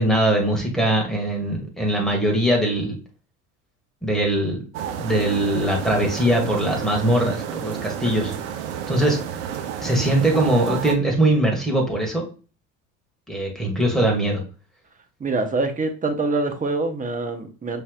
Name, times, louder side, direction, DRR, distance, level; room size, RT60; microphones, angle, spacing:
voice 1, 0.0-2.9 4.0-4.6 5.0-8.3 8.9-9.2 9.8-12.2 13.3-14.4, right 1 dB, ahead, 1.8 m, -21 dB
sound 1, 4.7-11.0, right 9 dB, 65° right, 0.8 m, -31 dB
voice 2, 15.2-17.8, right 3 dB, 20° right, 0.9 m, -25 dB
5.5 x 3.4 x 2.4 m
hypercardioid pair, 70°, 39 cm